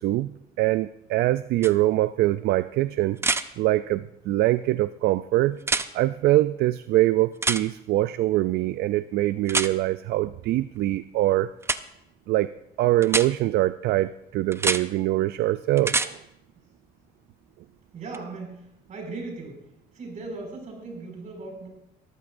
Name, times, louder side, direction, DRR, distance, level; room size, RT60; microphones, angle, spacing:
voice 1, 0.0-3.2 3.6-5.6 5.9-11.5 12.3-12.5 12.8-16.2, right 16 dB, 70° right, 14 dB, 0.4 m, -23 dB
sound 1, 1.6-1.7 3.2-3.4 5.6-5.9 7.4-7.6 9.5-9.7 11.6-11.8 13.0-13.3 14.5-14.8 15.8-16.1 18.1-18.2, right 3 dB, 15° right, 0.5 m, -25 dB
voice 2, 17.9-19.6 19.9-21.7, right 3 dB, 45° right, 0 dB, 6.0 m, -38 dB
22.0 x 14.5 x 2.6 m, 0.85 s
cardioid pair, 110°, 17 cm